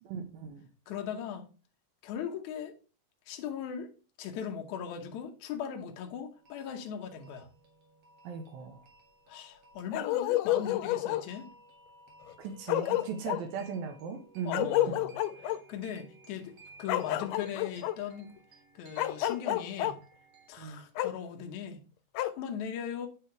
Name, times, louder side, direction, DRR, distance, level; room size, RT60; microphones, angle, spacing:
voice 1, 0.0-0.7 8.2-8.8 12.4-14.7 20.6-20.9, right 6 dB, 75° right, 2.5 m, -38 dB
voice 2, 0.9-1.5 2.0-2.7 3.3-3.9 4.2-7.5 9.3-11.5 12.9-13.0 14.4-15.2 15.4-16.5 16.8-18.3 18.8-20.0 20.5-21.8 22.2-23.1, left 8 dB, 70° left, 1.9 m, -39 dB
sound 1, 6.3-20.5, right 2 dB, 55° right, 2.0 m, -58 dB
Bark, 9.9-11.3 12.3-12.4 12.7-13.4 14.5-15.6 16.9-17.9 19.0-19.9 21.0-21.1 22.1-22.3, left 14 dB, 90° left, 2.5 m, -29 dB
8.5 x 3.5 x 4.5 m
omnidirectional pair, 4.4 m